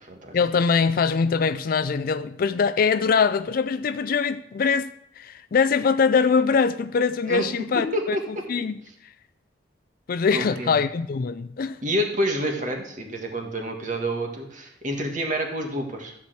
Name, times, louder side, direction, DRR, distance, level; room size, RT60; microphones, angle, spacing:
voice 1, 0.3-8.8 10.1-11.8, left 5 dB, 50° left, 0.4 m, -23 dB
voice 2, 7.8-8.2 10.3-10.7 11.8-16.1, equal, 45° right, 1.8 m, -28 dB
13.5 x 4.8 x 7.7 m
head